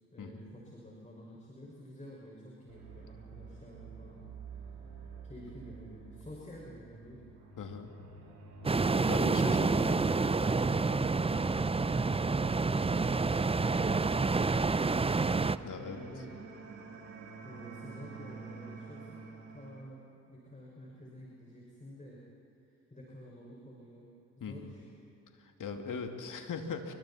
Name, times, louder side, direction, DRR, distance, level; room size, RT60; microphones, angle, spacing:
voice 1, 0.1-4.2 4.5-7.2 8.8-16.7 17.4-20.0 20.3-22.2 22.9-24.1 24.4-24.8, equal, 20° left, -4 dB, 5.8 m, -49 dB
sound 1, 2.7-19.7, right 5 dB, 80° right, 4.8 m, -49 dB
voice 2, 7.6-7.9 9.0-9.9 15.6-16.0 24.4-24.7 25.4-26.9, left 5 dB, 55° left, 4 dB, 2.6 m, -40 dB
sound 2, 8.6-15.6, right 4 dB, 15° right, 0.7 m, -28 dB
29.5 x 25.0 x 4.3 m, 2.9 s
hypercardioid pair, 45°, 37 cm